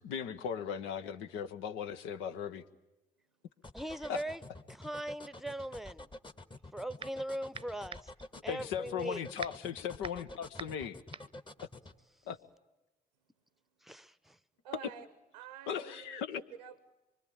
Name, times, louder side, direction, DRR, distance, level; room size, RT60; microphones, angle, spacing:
voice 1, 0.0-2.6 4.1-4.2 8.5-11.0 12.3-12.4 15.7-16.4, left 8 dB, 70° left, 1.1 m, -38 dB
sound 1, 3.6-12.0, left 2 dB, 25° left, 1.6 m, -49 dB
voice 2, 3.7-4.4 4.7-6.1 6.7-8.1 8.4-9.2 13.8-14.4, right 1 dB, ahead, 1.0 m, -40 dB
sound 2, 6.5-7.3 7.5-12.5, right 5 dB, 25° right, 0.9 m, -46 dB
voice 3, 14.6-15.1 15.3-16.9, right 9 dB, 80° right, 0.9 m, -49 dB
25.5 x 24.5 x 8.7 m
figure-of-eight pair, 45°, 20 cm